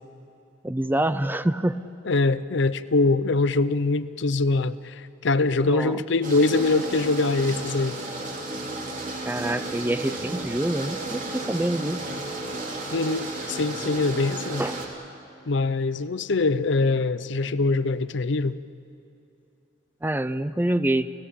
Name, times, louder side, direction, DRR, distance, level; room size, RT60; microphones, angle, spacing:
voice 1, 0.6-1.8 5.6-6.0 9.2-12.0 14.6-14.8 20.0-21.1, right 1 dB, 10° right, 13 dB, 0.5 m, -26 dB
voice 2, 2.1-8.0 12.9-14.6 15.5-18.6, left 3 dB, 65° left, 15 dB, 0.6 m, -23 dB
sound 1, 6.2-14.9, right 2 dB, 40° right, 3.1 m, -33 dB
29.5 x 16.0 x 8.7 m, 2.9 s
head